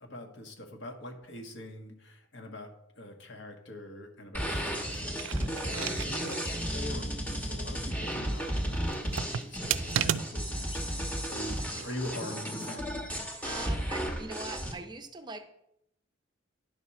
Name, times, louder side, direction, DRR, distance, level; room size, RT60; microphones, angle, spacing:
voice 1, 0.0-2.7 3.0-13.1, left 1 dB, 60° left, 4 dB, 1.4 m, -43 dB
sound 1, 4.3-14.7, equal, 10° left, 1.2 m, -34 dB
sound 2, 5.0-6.4 6.8-6.9 8.9-10.6 11.5-12.0, right 10 dB, 80° right, 0.4 m, -33 dB
voice 2, 13.4-15.5, right 3 dB, 20° right, 7 dB, 0.5 m, -41 dB
10.0 x 6.1 x 4.2 m, 0.78 s
head